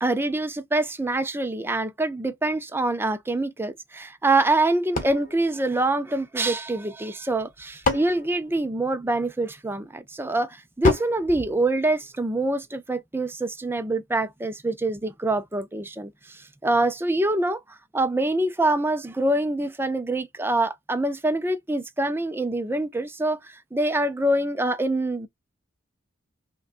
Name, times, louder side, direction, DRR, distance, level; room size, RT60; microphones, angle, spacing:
voice 1, 0.0-17.6 17.9-25.3, right 2 dB, 10° right, 0.5 m, -25 dB
sound 1, 4.9-6.5 7.3-9.3 10.8-12.4, left 2 dB, 40° left, 1.1 m, -30 dB
5.5 x 2.3 x 2.4 m
head